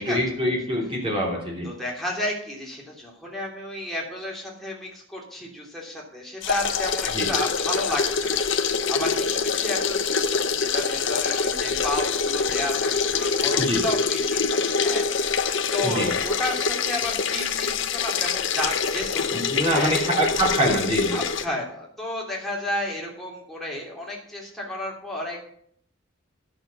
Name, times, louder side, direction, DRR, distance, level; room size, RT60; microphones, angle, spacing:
voice 1, 0.0-1.7 7.1-7.3 13.6-13.8 15.8-16.1 19.3-21.1, equal, 25° right, -2 dB, 3.0 m, -24 dB
voice 2, 1.6-12.7 13.0-20.0 21.1-25.5, left 1 dB, ahead, -3 dB, 2.9 m, -32 dB
sound 1, 6.4-21.4, left 5 dB, 60° left, 0.8 m, -25 dB
11.5 x 6.7 x 7.0 m, 0.67 s
head